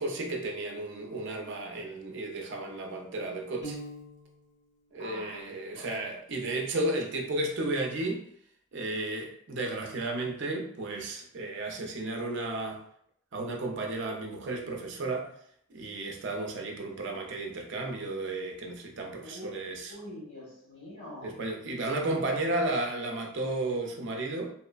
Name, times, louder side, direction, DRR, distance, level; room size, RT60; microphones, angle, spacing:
voice 1, 0.0-3.8 4.9-8.3 8.7-12.8 13.3-15.3 15.7-19.9 21.2-24.5, right 2 dB, 55° right, 2 dB, 0.4 m, -33 dB
Piano, 3.6-4.6, right 1 dB, 55° left, 0.6 m, -42 dB
voice 2, 5.0-6.0 19.2-19.5 19.9-21.3, left 1 dB, 75° left, -5 dB, 1.2 m, -45 dB
2.9 x 2.0 x 2.3 m, 0.68 s
head